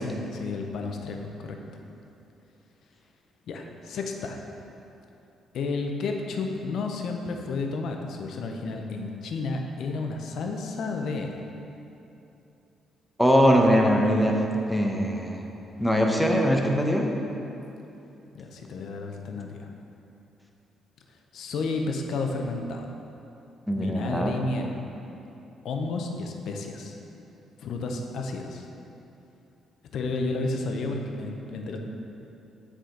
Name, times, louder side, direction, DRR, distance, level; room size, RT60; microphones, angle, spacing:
voice 1, 0.0-1.6 3.5-4.4 5.5-11.4 18.3-19.7 21.3-22.9 23.7-24.8 25.6-27.0 27.6-28.7 29.9-31.8, left 3 dB, 70° left, 3 dB, 0.7 m, -32 dB
voice 2, 13.2-14.4 14.7-15.4 15.8-17.1 23.7-24.3, equal, ahead, 0 dB, 0.8 m, -21 dB
7.7 x 4.9 x 3.8 m, 2.9 s
cardioid pair, 90°, 0 cm